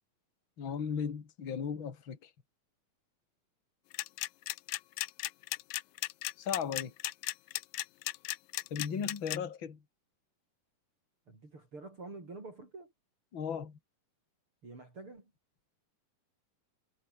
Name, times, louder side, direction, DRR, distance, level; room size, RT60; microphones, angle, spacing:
voice 1, 0.6-2.2 6.4-6.9 8.7-9.8 13.3-13.8, left 7 dB, 35° left, 3.0 m, -36 dB
sound 1, 3.9-9.4, left 19 dB, 80° left, 2.4 m, -35 dB
voice 2, 11.3-12.9 14.6-15.3, right 3 dB, 35° right, 7.4 m, -47 dB
omnidirectional pair, 3.9 m